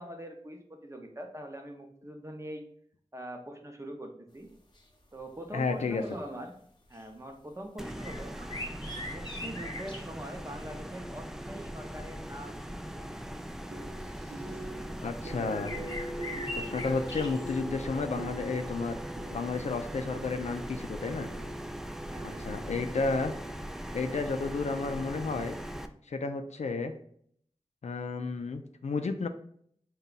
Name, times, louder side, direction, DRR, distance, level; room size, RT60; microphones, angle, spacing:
voice 1, 0.0-2.7 3.1-4.5 5.1-6.6 6.9-8.4 9.1-13.1 22.0-22.5 22.9-23.0, equal, 25° right, 4 dB, 0.7 m, -43 dB
sound 1, 4.8-4.9 5.2-5.4 5.8-6.5 6.9-7.1 7.8-10.2 12.3-12.4 13.4-13.5 14.0-14.6 15.4-17.6, left 1 dB, 40° left, 0.8 m, -42 dB
voice 2, 5.5-6.0 15.0-15.8 16.6-19.0 19.3-21.3 22.2-23.3 23.9-25.6 26.1-27.0 27.8-29.3, left 4 dB, 80° left, 7 dB, 0.4 m, -32 dB
sound 2, 7.8-25.9, equal, 5° right, 0.3 m, -40 dB
sound 3, 13.7-23.8, right 1 dB, 70° right, 0.6 m, -44 dB
3.9 x 2.3 x 3.8 m, 0.64 s
wide cardioid pair, 40°, 11 cm